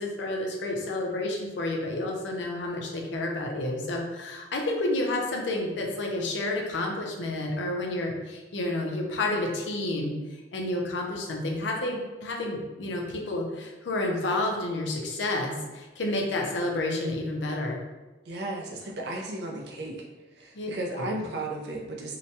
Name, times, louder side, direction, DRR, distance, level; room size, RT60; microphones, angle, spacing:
voice 1, 0.0-10.1 10.5-17.8 20.5-20.7 21.0-21.1, left 2 dB, 80° left, 1 dB, 0.5 m, -30 dB
voice 2, 18.3-20.0 20.3-22.2, right 2 dB, 65° right, -1 dB, 0.5 m, -34 dB
2.8 x 2.2 x 2.7 m, 1.1 s
head